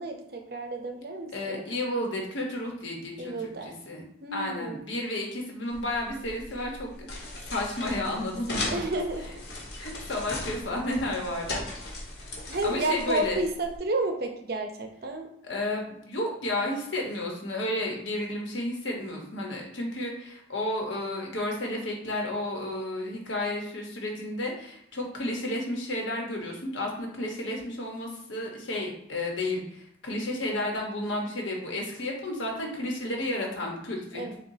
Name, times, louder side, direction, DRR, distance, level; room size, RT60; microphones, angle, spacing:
voice 1, 0.0-1.6 3.2-3.7 4.2-4.8 8.7-9.3 12.5-15.3 34.1-34.4, right 2 dB, 55° right, 4 dB, 0.6 m, -31 dB
voice 2, 1.3-4.0 4.3-8.8 9.8-11.6 12.3-13.4 15.4-34.3, left 1 dB, 85° left, 0 dB, 1.1 m, -32 dB
sound 1, 5.7-13.8, left 2 dB, 55° left, 1.2 m, -38 dB
6.8 x 2.3 x 2.7 m, 0.75 s
head